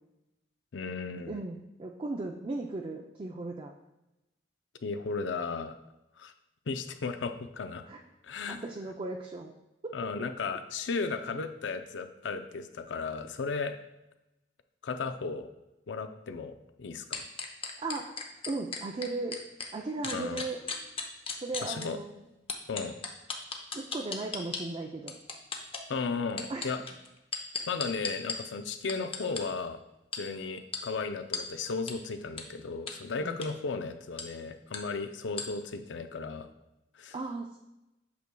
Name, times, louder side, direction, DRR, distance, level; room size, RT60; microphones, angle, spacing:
voice 1, 0.7-1.4 4.8-5.8 6.2-6.3 6.7-7.8 8.2-8.6 9.9-13.8 14.8-15.5 15.9-17.3 20.0-20.4 21.6-22.0 22.7-22.9 25.9-26.8 27.7-29.8 30.1-36.5 36.9-37.1, left 4 dB, 70° left, 9 dB, 0.5 m, -35 dB
voice 2, 1.3-3.7 7.9-8.0 8.5-9.5 9.8-10.0 17.8-18.1 18.5-19.4 19.7-20.6 21.4-22.2 23.7-25.2 26.5-26.7 33.2-33.4 37.1-37.6, right 3 dB, 30° right, 1 dB, 0.4 m, -36 dB
sound 1, 17.1-19.7 20.0-21.9 22.5-24.6 25.1-25.8 26.3-28.4 28.9-29.4 30.1-30.2 30.7-30.8 31.3-31.4 31.9-32.0 32.4-32.5 32.9-33.0 33.3-33.5 34.2-34.3 34.7-34.8 35.4-35.5, left 5 dB, 30° left, 0.7 m, -35 dB
8.3 x 6.1 x 2.2 m, 0.94 s
head